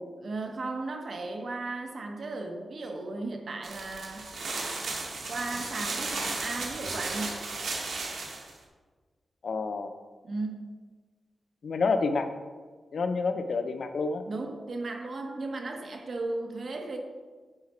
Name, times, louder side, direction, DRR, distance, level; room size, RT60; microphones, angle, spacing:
voice 1, 0.2-4.3 5.3-7.4 10.2-10.7 14.3-17.0, right 2 dB, 55° right, 3 dB, 1.1 m, -35 dB
sound 1, 3.6-8.5, right 3 dB, 85° right, 1.5 m, -35 dB
voice 2, 9.4-9.9 11.6-12.3 12.9-14.2, left 4 dB, 65° left, 8 dB, 0.6 m, -28 dB
9.9 x 4.9 x 4.4 m, 1.4 s
wide cardioid pair, 110°, 0 cm